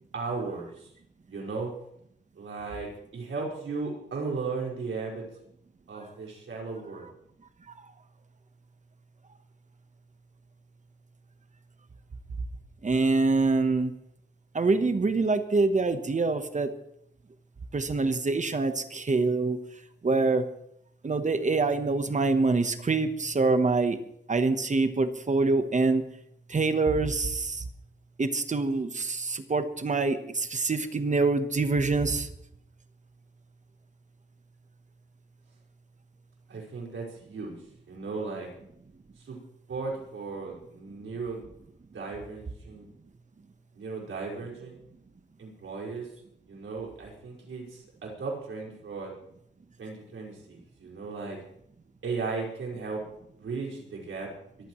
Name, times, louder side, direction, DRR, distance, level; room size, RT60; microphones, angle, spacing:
voice 1, 0.1-0.9 1.3-1.7 2.4-5.2 5.9-7.1 36.5-37.5 37.9-38.5 39.3-39.4 39.7-41.5 41.9-42.9 43.7-44.8 45.4-46.1 46.5-49.1 49.8-51.4 52.0-53.0 53.4-54.3, right 4 dB, 90° right, -3 dB, 5.2 m, -36 dB
voice 2, 12.8-13.9 14.5-16.7 17.7-19.6 20.0-20.5 21.0-24.0 24.3-26.0 26.5-27.6 28.2-32.3, right 3 dB, 35° right, 9 dB, 1.1 m, -25 dB
24.0 x 14.5 x 3.1 m, 0.74 s
wide cardioid pair, 120°, 20 cm